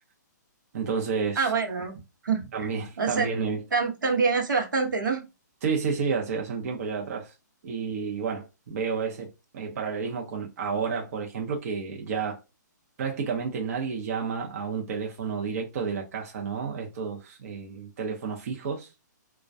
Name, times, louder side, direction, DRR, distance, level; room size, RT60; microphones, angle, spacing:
voice 1, 0.7-1.5 2.5-3.6 5.6-7.3 7.6-12.4 13.0-18.9, right 5 dB, 50° right, 0.6 m, -30 dB
voice 2, 1.4-2.7 3.0-3.3 3.7-5.2, right 5 dB, 85° right, 0.9 m, -26 dB
2.2 x 2.2 x 2.6 m
hypercardioid pair, 145°, 10 cm